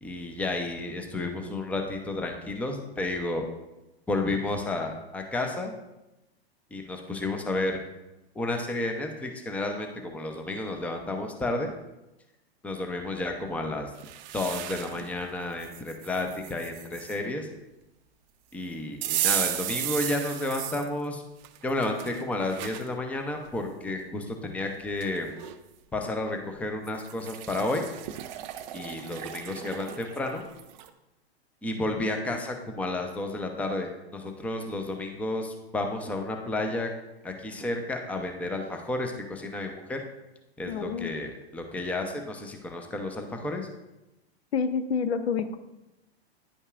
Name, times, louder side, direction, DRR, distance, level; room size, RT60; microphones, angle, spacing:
voice 1, 0.0-3.5 4.1-5.8 6.7-7.8 8.4-11.7 12.6-13.9 14.3-17.5 18.5-21.2 21.6-25.3 25.9-27.9 28.7-30.4 31.6-36.9 37.2-40.0 40.6-43.7, left 2 dB, 5° left, 4 dB, 0.6 m, -31 dB
sound 1, 14.0-15.1 15.6-17.2 19.0-20.9 21.4-22.9 23.5-23.6 24.6-24.7 25.0-25.6 26.9-30.9, right 13 dB, 45° right, 0.5 m, -35 dB
voice 2, 40.7-41.2 44.5-45.6, left 6 dB, 75° left, 11 dB, 0.6 m, -28 dB
9.8 x 5.3 x 2.4 m, 0.97 s
hypercardioid pair, 115°, 32 cm